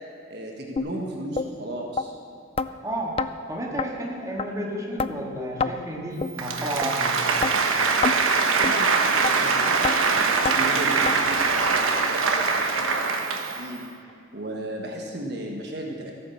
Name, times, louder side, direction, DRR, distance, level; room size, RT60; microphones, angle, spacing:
voice 1, 0.3-2.2 8.6-13.9 14.3-16.1, right 1 dB, 50° right, 1 dB, 1.4 m, -35 dB
sound 1, 0.8-0.9 1.4-1.5 2.0-2.1 2.6-2.7 3.2-3.3 3.8-3.9 4.4-4.5 5.0-5.1 5.6-5.7 6.2-6.3 6.8-6.9 7.4-7.5 8.0-8.2 8.6-8.8 9.2-9.3 9.8-10.0 10.4-10.6 11.1-11.2 11.7-11.8 12.3-12.4 12.9-13.0 13.5-13.6, left 4 dB, 30° left, 0.3 m, -26 dB
voice 2, 2.8-3.2 3.5-7.4, right 1 dB, 15° right, -2 dB, 1.8 m, -31 dB
Applause, 6.3-13.7, right 4 dB, 85° right, 1.2 m, -23 dB
14.0 x 9.2 x 7.1 m, 2.6 s
head